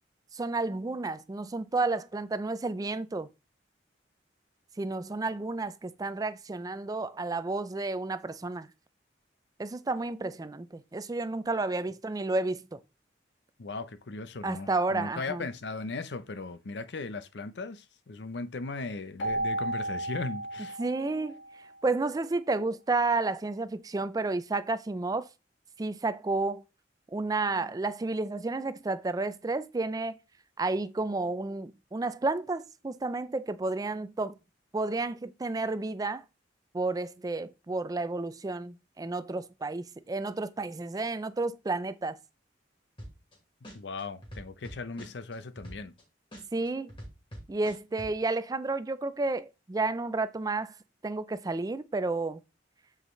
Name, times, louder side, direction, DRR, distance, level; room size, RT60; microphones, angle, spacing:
voice 1, 0.3-3.3 4.8-8.7 9.6-12.8 14.4-15.5 20.8-21.4 21.8-25.3 25.8-26.6 27.1-30.2 30.6-34.3 34.7-36.2 36.7-42.2 46.5-46.9 47.5-50.7 51.0-52.4, right 3 dB, 20° right, 0.4 m, -31 dB
voice 2, 13.6-20.8 43.7-45.9, left 3 dB, 65° left, 0.6 m, -38 dB
Keyboard (musical), 19.2-21.8, right 1 dB, 85° left, 1.6 m, -34 dB
sound 1, 43.0-43.3 43.6-46.0 46.3-48.1, equal, 30° left, 2.4 m, -43 dB
7.7 x 4.9 x 3.2 m
head